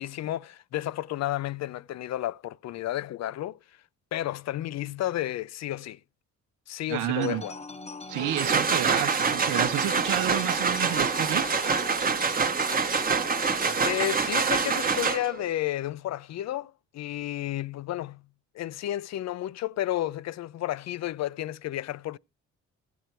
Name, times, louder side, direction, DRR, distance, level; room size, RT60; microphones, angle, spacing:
voice 1, 0.0-3.6 4.1-6.0 6.7-7.5 13.7-18.2 18.5-22.2, left 13 dB, 60° left, 0.5 m, -32 dB
voice 2, 6.9-7.4 8.1-11.4, right 12 dB, 80° right, 0.8 m, -30 dB
sound 1, 7.2-13.8, left 3 dB, 20° left, 0.8 m, -42 dB
sound 2, 8.1-15.5, right 5 dB, 30° right, 0.9 m, -26 dB
15.0 x 7.9 x 4.5 m
cardioid pair, 90°, 30 cm